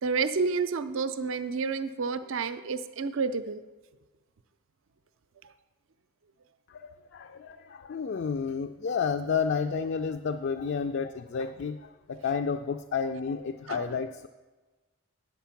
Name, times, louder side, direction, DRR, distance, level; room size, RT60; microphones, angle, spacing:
voice 1, 0.0-3.6 13.7-13.8, right 4 dB, 60° right, 12 dB, 0.5 m, -29 dB
voice 2, 6.7-14.3, left 6 dB, 50° left, 7 dB, 0.3 m, -31 dB
9.1 x 7.4 x 5.8 m, 1.3 s
head